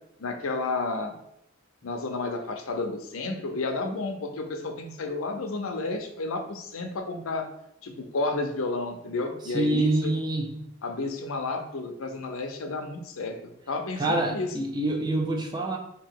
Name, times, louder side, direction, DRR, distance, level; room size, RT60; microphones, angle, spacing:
voice 1, 0.2-1.1 1.8-7.5 7.8-10.1 10.8-13.4 13.7-14.5, left 3 dB, 85° left, 5 dB, 0.6 m, -31 dB
voice 2, 9.4-10.5 14.0-15.8, right 2 dB, 20° right, 2 dB, 0.4 m, -26 dB
3.0 x 2.8 x 4.5 m, 0.79 s
head